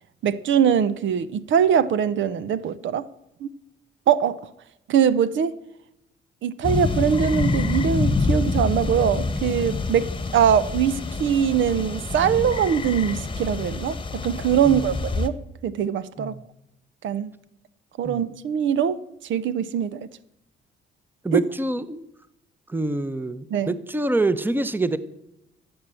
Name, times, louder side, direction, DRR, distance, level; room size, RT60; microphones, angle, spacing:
voice 1, 0.2-3.0 3.4-3.5 4.1-4.4 4.9-5.5 6.4-10.0 10.3-15.4 15.6-16.3 17.0-17.3 18.0-19.0 19.3-20.1 21.3-21.4 23.5-23.7, right 8 dB, 70° right, 15 dB, 0.8 m, -22 dB
sound 1, 6.6-15.3, left 3 dB, 25° left, 1.1 m, -27 dB
voice 2, 21.2-22.0 22.7-25.0, right 2 dB, 10° right, 14 dB, 0.9 m, -26 dB
14.0 x 8.0 x 7.6 m, 0.83 s
cardioid pair, 90°, 20 cm